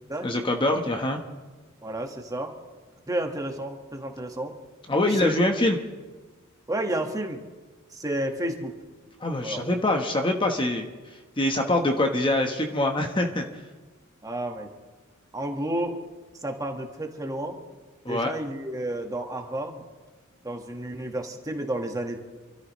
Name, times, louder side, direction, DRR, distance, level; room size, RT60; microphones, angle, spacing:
voice 1, 0.2-1.2 4.9-5.8 9.2-10.9 11.4-13.4 18.0-18.3, left 1 dB, 25° left, 3 dB, 1.2 m, -24 dB
voice 2, 1.8-2.5 3.1-4.5 5.1-5.4 6.7-7.4 7.9-8.7 9.4-9.6 14.2-14.7 15.3-16.0 16.4-17.6 18.0-19.8 20.4-22.2, right 1 dB, 15° right, 3 dB, 1.6 m, -31 dB
27.5 x 13.5 x 3.2 m, 1.3 s
head